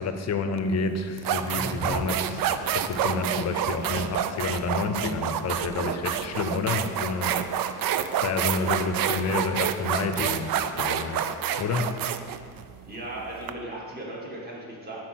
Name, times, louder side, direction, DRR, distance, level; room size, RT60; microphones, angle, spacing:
voice 1, 0.0-2.4 2.7-11.9, left 4 dB, 45° left, 8 dB, 0.6 m, -30 dB
sound 1, 0.6-0.7 1.2-13.5, right 9 dB, 65° right, 0.5 m, -28 dB
sound 2, 1.0-6.3, equal, 5° right, 0.7 m, -40 dB
voice 2, 12.9-15.0, right 1 dB, 25° right, -4 dB, 2.0 m, -37 dB
8.4 x 4.5 x 6.2 m, 2.2 s
cardioid pair, 135°, 38 cm